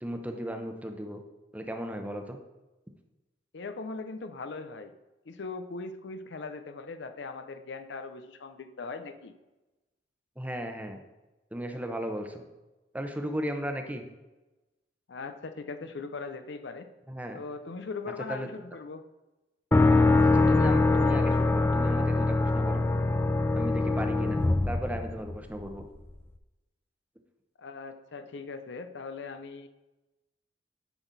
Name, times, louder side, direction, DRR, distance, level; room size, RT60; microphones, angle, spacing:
voice 1, 0.0-1.2 1.5-2.4 10.4-11.0 11.5-12.4 12.9-14.0 17.1-17.4 18.3-18.5 20.3-22.8 23.5-25.9, equal, 10° right, 5 dB, 0.8 m, -35 dB
voice 2, 3.5-4.9 5.3-9.3 15.1-16.9 17.3-19.0 27.6-29.7, left 4 dB, 70° left, 9 dB, 0.6 m, -40 dB
sound 1, 19.7-25.6, left 3 dB, 15° left, 0.3 m, -23 dB
10.0 x 6.0 x 4.0 m, 1.1 s
head